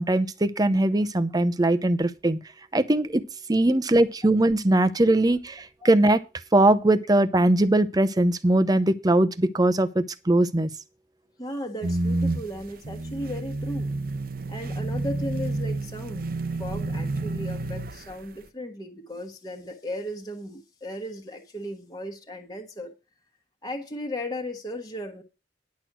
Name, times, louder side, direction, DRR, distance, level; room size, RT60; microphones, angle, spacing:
voice 1, 0.0-2.4 2.7-3.2 3.5-6.2 6.5-10.7, right 1 dB, 20° right, 0.7 m, -21 dB
voice 2, 11.4-13.9 14.5-16.3 16.6-22.9 23.6-25.2, equal, 20° left, 1.3 m, -36 dB
sound 1, 11.8-18.3, right 2 dB, 50° right, 0.8 m, -29 dB
10.5 x 6.2 x 6.1 m
head